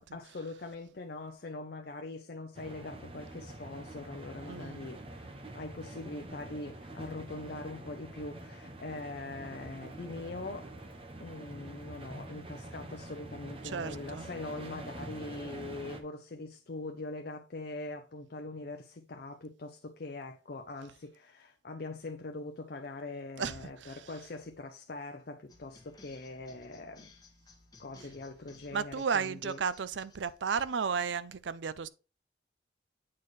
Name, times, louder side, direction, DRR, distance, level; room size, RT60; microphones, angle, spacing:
voice 1, 0.0-10.7 11.2-27.1 27.8-29.6, left 2 dB, 55° left, 0.6 m, -42 dB
sound 1, 2.5-16.0, right 1 dB, 30° right, 0.9 m, -46 dB
voice 2, 4.5-4.8 13.6-14.3 23.4-23.6 23.8-23.9 28.7-31.9, right 6 dB, 85° right, 0.5 m, -33 dB
sound 2, 25.5-31.0, left 3 dB, 20° left, 1.4 m, -59 dB
8.5 x 4.3 x 3.2 m
head